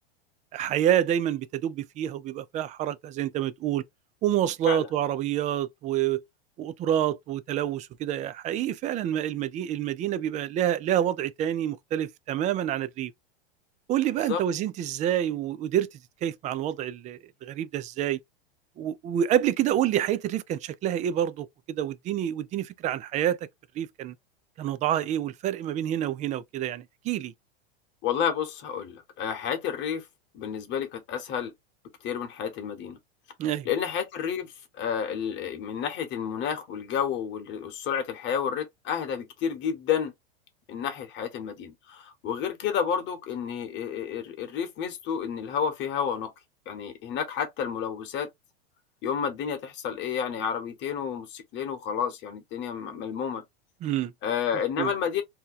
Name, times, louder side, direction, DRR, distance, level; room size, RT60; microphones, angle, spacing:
voice 1, 0.5-3.8 4.2-6.2 6.6-13.1 13.9-15.9 16.2-18.2 18.8-23.4 23.8-24.1 24.6-27.3 33.4-33.7 53.8-54.1 54.8-54.9, right 11 dB, 25° right, 0.3 m, -27 dB
voice 2, 28.0-30.0 30.3-31.5 32.0-33.0 33.6-34.5 34.8-40.1 40.7-46.3 46.7-48.3 49.0-53.4 54.2-55.2, left 7 dB, 40° left, 1.1 m, -30 dB
2.9 x 2.2 x 3.8 m
hypercardioid pair, 105°, 30 cm